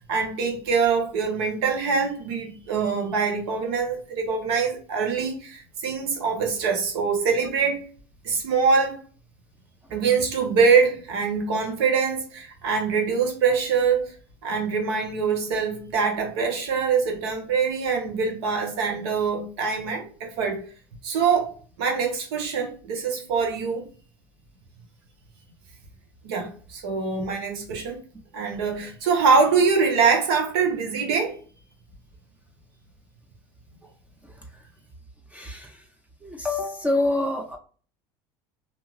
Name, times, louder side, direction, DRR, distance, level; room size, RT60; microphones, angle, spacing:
voice 1, 0.1-7.8 8.2-9.0 9.9-14.1 14.4-20.6 21.0-21.5 21.8-23.9 26.2-28.0 28.3-31.3, right 5 dB, 85° right, 0.9 m, -24 dB
voice 2, 35.3-35.7 36.2-37.6, left 2 dB, 10° right, 0.5 m, -26 dB
2.7 x 2.3 x 3.1 m
supercardioid pair, 95°, 13 cm